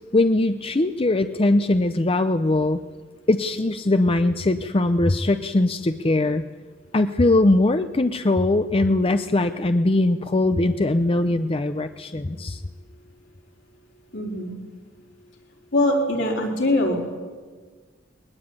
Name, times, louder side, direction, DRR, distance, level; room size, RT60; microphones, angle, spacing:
voice 1, 0.1-2.8 3.3-6.4 6.9-12.6, left 2 dB, 30° left, 9 dB, 0.7 m, -21 dB
voice 2, 14.1-14.6 15.7-17.0, left 1 dB, 70° left, 0 dB, 4.6 m, -22 dB
21.0 x 19.5 x 8.9 m, 1.5 s
head